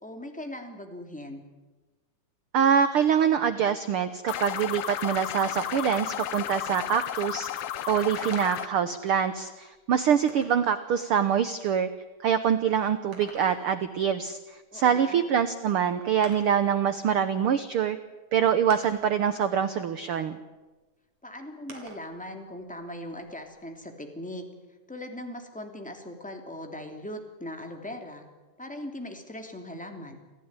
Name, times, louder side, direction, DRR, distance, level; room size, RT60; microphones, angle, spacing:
voice 1, 0.0-1.4 14.7-15.2 21.2-24.5 24.9-28.2 28.6-30.2, left 1 dB, 5° left, 3 dB, 2.4 m, -39 dB
voice 2, 2.5-11.9 12.2-18.0 18.3-20.4, right 8 dB, 75° right, 11 dB, 1.3 m, -25 dB
sound 1, 4.3-8.7, left 11 dB, 70° left, 1.5 m, -33 dB
sound 2, 5.6-6.4 7.4-7.5 8.2-8.7 9.3-10.7 12.9-13.9 15.4-15.5 16.2-16.7 17.7-17.8 18.7-19.3 21.7-22.2 22.5-23.6, right 3 dB, 55° right, 4.4 m, -46 dB
27.0 x 15.0 x 9.7 m, 1.2 s
omnidirectional pair, 3.7 m